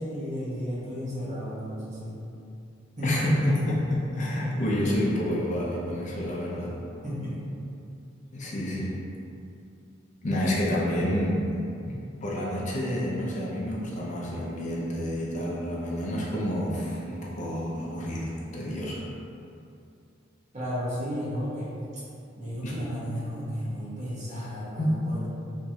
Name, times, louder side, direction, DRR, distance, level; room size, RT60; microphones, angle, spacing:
voice 1, 0.0-2.2 3.0-3.3 7.0-7.5 20.5-22.0 22.3-25.3, equal, 40° right, -9 dB, 1.1 m, -33 dB
voice 2, 3.0-6.8 8.3-9.0 10.2-11.5 11.9-19.1 22.6-22.7 24.8-24.9, left 1 dB, 40° left, -5 dB, 0.5 m, -29 dB
3.5 x 3.0 x 2.8 m, 2.6 s
head